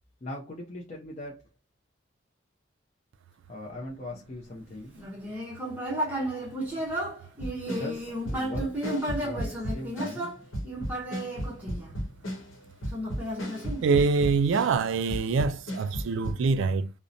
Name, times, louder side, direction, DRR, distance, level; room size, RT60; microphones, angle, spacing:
voice 1, 0.2-1.5 3.5-5.0 7.6-10.3, left 1 dB, 35° left, 0.5 m, -40 dB
Human voice, 5.0-12.3 12.9-14.3, right 1 dB, 10° right, 0.7 m, -33 dB
sound 1, 7.4-10.3 10.5-14.8 15.1-16.3, equal, 85° left, 0.9 m, -35 dB
voice 2, 13.8-16.9, right 4 dB, 70° right, 0.3 m, -25 dB
2.6 x 2.1 x 2.5 m
head